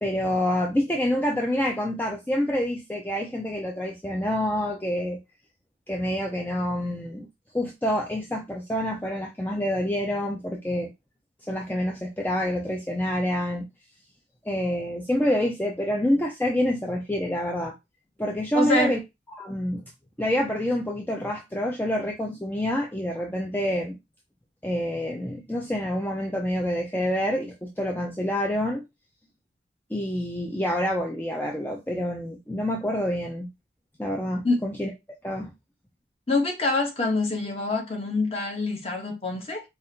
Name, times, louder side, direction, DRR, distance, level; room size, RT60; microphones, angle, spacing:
voice 1, 0.0-5.2 5.9-7.3 7.5-10.9 11.5-13.7 14.5-17.7 18.2-19.0 19.4-19.9 20.2-24.0 24.6-28.8 29.9-33.5 34.0-34.9 35.2-35.5, left 1 dB, 10° left, 0.4 m, -27 dB
voice 2, 18.5-18.9 34.4-34.6 36.3-39.6, left 2 dB, 30° left, 1.0 m, -25 dB
4.8 x 2.5 x 2.8 m
head